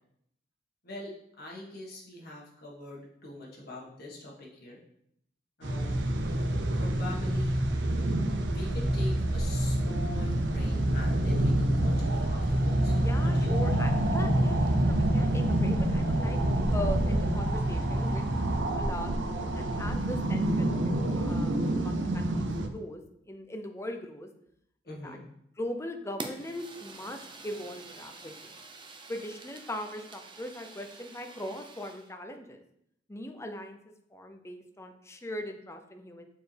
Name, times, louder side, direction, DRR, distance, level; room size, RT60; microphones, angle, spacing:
voice 1, 0.8-4.8 5.6-6.0 6.8-7.6 8.5-12.9 13.2-13.8 24.8-25.2, left 1 dB, 60° left, -3 dB, 1.7 m, -43 dB
sound 1, 5.6-18.6, right 1 dB, 60° right, 0.9 m, -29 dB
sound 2, 5.6-22.7, right 1 dB, 85° right, 0.6 m, -30 dB
voice 2, 13.0-18.3 18.7-24.3 24.9-25.2 25.6-28.5 29.1-32.6 33.1-33.8 34.1-36.3, left 1 dB, 15° left, 6 dB, 0.6 m, -40 dB
Fire, 26.2-32.1, right 3 dB, 25° right, 0.6 m, -46 dB
6.6 x 4.4 x 3.4 m, 0.74 s
head